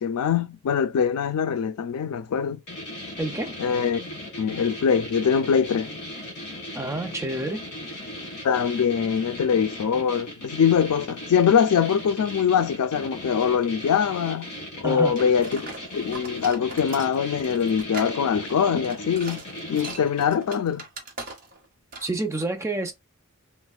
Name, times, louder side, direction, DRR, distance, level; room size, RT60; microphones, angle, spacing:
voice 1, 0.0-2.6 3.6-4.0 4.4-5.9 8.4-14.5 14.8-15.7 15.9-19.4 19.7-20.8, left 7 dB, 85° left, 0.4 m, -23 dB
sound 1, 2.7-20.4, left 1 dB, 50° left, 1.4 m, -38 dB
voice 2, 3.2-3.6 6.7-7.6 14.8-15.2 22.0-22.9, right 2 dB, 15° right, 0.4 m, -28 dB
sound 2, 15.1-21.6 21.9-22.2, right 3 dB, 40° right, 0.9 m, -40 dB
3.2 x 2.1 x 2.2 m
head